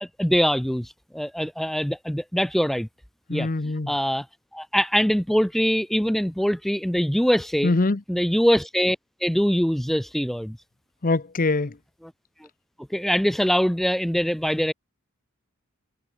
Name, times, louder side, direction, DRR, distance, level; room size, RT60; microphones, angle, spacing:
voice 1, 0.0-2.9 3.3-3.5 3.9-4.3 4.5-7.7 8.1-10.6 12.9-14.7, equal, ahead, 0.5 m, -23 dB
voice 2, 3.3-3.9 7.6-8.0 11.0-11.7, left 3 dB, 40° left, 0.8 m, -23 dB
head